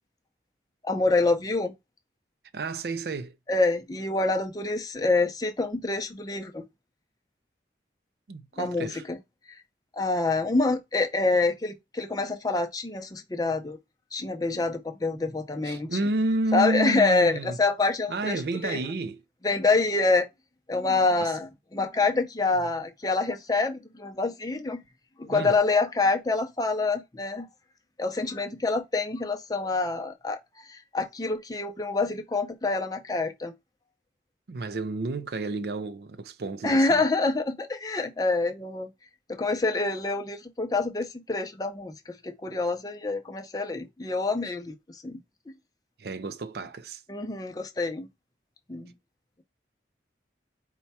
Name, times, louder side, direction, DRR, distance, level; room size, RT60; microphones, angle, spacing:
voice 1, 0.8-1.7 3.5-6.6 8.6-9.2 10.0-13.8 14.1-16.0 16.5-18.8 19.4-20.3 20.7-24.8 25.2-27.5 28.0-30.4 30.7-33.5 36.6-38.9 39.3-41.9 42.2-45.2 47.1-48.1 48.7-48.9, left 3 dB, 20° left, 0.6 m, -26 dB
voice 2, 2.5-3.3 8.3-9.0 15.6-17.6 18.1-19.2 21.2-21.3 25.3-25.6 34.5-37.0 44.5-44.6 46.0-47.0, right 2 dB, 65° right, 0.4 m, -30 dB
4.5 x 2.3 x 4.1 m
head